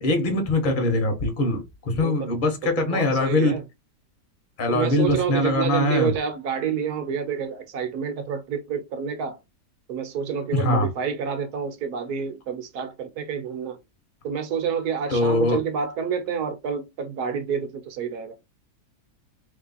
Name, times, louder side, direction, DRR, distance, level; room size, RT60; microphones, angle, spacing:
voice 1, 0.0-3.6 4.6-6.1 10.5-10.9 15.1-15.6, left 2 dB, 35° left, 1.1 m, -22 dB
voice 2, 2.8-3.6 4.7-9.4 9.9-13.8 14.2-18.4, right 7 dB, 65° right, 1.3 m, -28 dB
3.3 x 3.1 x 4.0 m
omnidirectional pair, 1.9 m